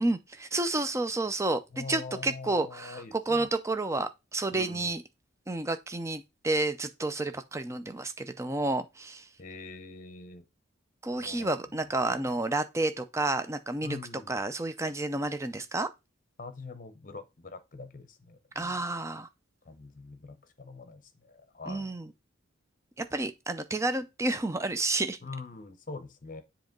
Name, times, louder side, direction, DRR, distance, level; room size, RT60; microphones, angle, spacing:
voice 1, 0.0-5.0 5.5-9.3 11.0-14.0 14.3-15.9 18.6-19.3 21.7-22.1 23.0-25.2, right 2 dB, 15° right, 0.4 m, -30 dB
voice 2, 1.7-3.5 4.5-5.0 9.4-10.4 11.2-11.5 12.1-12.3 13.8-14.3 16.4-18.8 19.6-22.0 25.2-26.4, left 3 dB, 40° left, 0.8 m, -44 dB
7.6 x 3.0 x 5.1 m
head